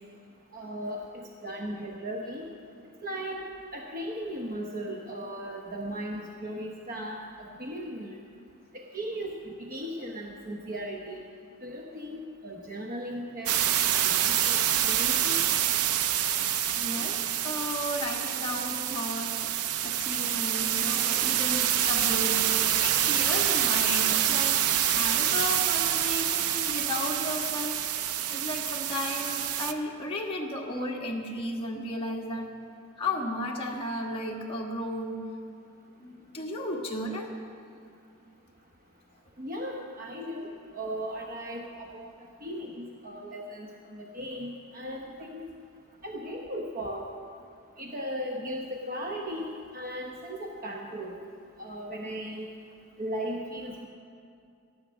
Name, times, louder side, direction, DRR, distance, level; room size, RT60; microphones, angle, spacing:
voice 1, 0.5-2.4 3.0-3.4 3.7-8.2 8.7-11.2 11.6-13.6 14.0-15.4 39.4-42.1 42.4-45.4 46.0-47.1 47.8-49.5 49.7-51.2 51.6-52.5 53.0-53.9, equal, 40° right, 0 dB, 1.0 m, -37 dB
sound 1, 13.5-29.7, right 10 dB, 85° right, 0.6 m, -27 dB
voice 2, 16.7-24.6 24.9-27.8 28.3-32.5 33.0-35.2 36.0-37.3, left 1 dB, 25° left, -1 dB, 1.6 m, -34 dB
14.0 x 11.0 x 6.3 m, 2.4 s
head